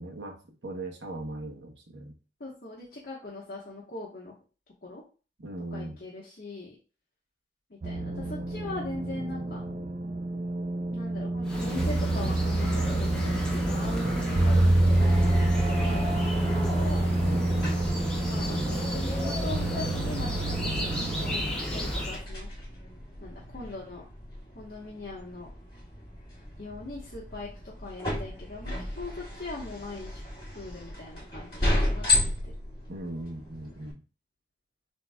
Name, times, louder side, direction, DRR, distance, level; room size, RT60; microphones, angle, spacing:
voice 1, 0.0-2.2 5.4-6.0 17.2-17.8 32.9-34.0, right 1 dB, 75° right, 2 dB, 1.1 m, -39 dB
voice 2, 2.4-4.3 4.8-5.0 5.7-6.7 7.7-9.6 10.9-17.0 18.3-20.9 21.2-22.5 23.2-24.0 24.5-25.5 26.6-30.2 30.5-32.5, left 2 dB, 55° left, -4 dB, 1.2 m, -41 dB
sound 1, 7.8-21.4, right 2 dB, 40° right, 0.4 m, -27 dB
sound 2, 11.4-22.2, equal, 5° left, 1.2 m, -33 dB
sound 3, 15.0-33.9, left 1 dB, 30° left, 2.3 m, -35 dB
7.6 x 2.8 x 2.3 m, 0.35 s
head